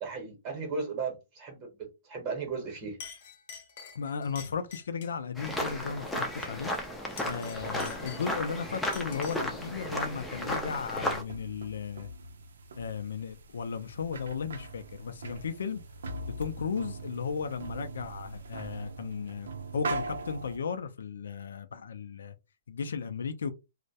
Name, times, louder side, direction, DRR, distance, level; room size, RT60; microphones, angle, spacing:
voice 1, 0.0-1.7 2.0-3.0, right 4 dB, 25° right, 0.8 m, -35 dB
Chink clink, 2.5-2.7 3.0-5.2 7.0-8.5 8.9-9.5, left 6 dB, 45° left, 0.6 m, -47 dB
voice 2, 3.9-6.7 7.2-12.1 12.8-15.8 16.4-19.5 19.7-22.3 22.7-23.5, left 6 dB, 85° left, 0.3 m, -35 dB
sound 1, 5.4-11.2, left 1 dB, 5° left, 0.3 m, -34 dB
sound 2, 7.6-20.6, right 3 dB, 85° right, 0.5 m, -42 dB
2.2 x 2.0 x 2.7 m
hypercardioid pair, 170°, 0 cm